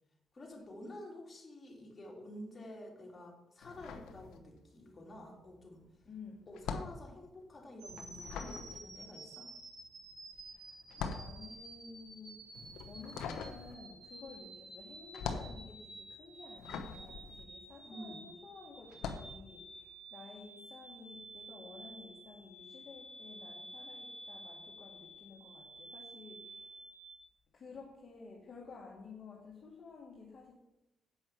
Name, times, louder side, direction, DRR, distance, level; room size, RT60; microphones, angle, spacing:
voice 1, 0.3-5.8 6.5-9.5 17.9-18.2, left 1 dB, 30° left, -1 dB, 2.8 m, -49 dB
sound 1, 3.6-4.9 5.1-18.3 18.8-19.4, left 6 dB, 85° left, 0.9 m, -44 dB
voice 2, 6.1-6.5 10.3-10.8 11.1-26.9 27.5-30.5, left 4 dB, 45° left, -3 dB, 1.8 m, -53 dB
sound 2, 7.8-27.2, right 2 dB, 55° right, 3.6 m, -52 dB
8.0 x 5.4 x 7.6 m, 0.91 s
cardioid pair, 90°, 0 cm